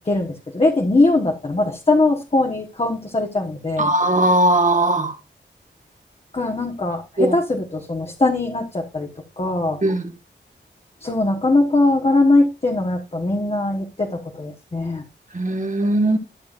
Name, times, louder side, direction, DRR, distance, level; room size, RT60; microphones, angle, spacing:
voice 1, 0.0-3.9 6.3-9.1 9.4-9.8 11.0-15.0, left 2 dB, 30° left, 1.3 m, -21 dB
voice 2, 3.8-5.1 7.2-7.3 9.8-10.1 15.3-16.2, right 1 dB, 40° right, 1.6 m, -18 dB
12.5 x 7.2 x 2.5 m
wide cardioid pair, 80°, 19 cm